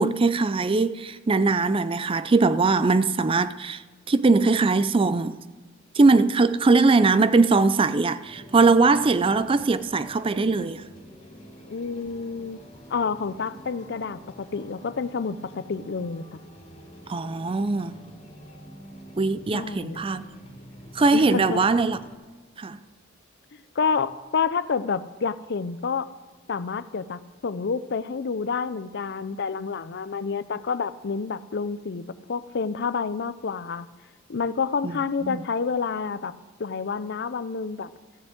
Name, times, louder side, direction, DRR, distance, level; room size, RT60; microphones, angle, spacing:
voice 1, 0.0-3.8 4.1-5.4 5.9-10.8 17.1-17.9 19.2-20.3 20.9-22.0 22.6-22.8 34.8-35.0 35.2-35.4, right 3 dB, 25° right, 0.4 m, -21 dB
sound 1, 8.2-22.1, equal, 30° left, 3.0 m, -47 dB
voice 2, 11.7-12.6 12.9-16.4 19.5-20.1 21.1-21.6 23.8-26.1 26.5-33.9 34.3-37.9, left 5 dB, 55° left, 0.5 m, -29 dB
15.0 x 7.0 x 7.9 m
head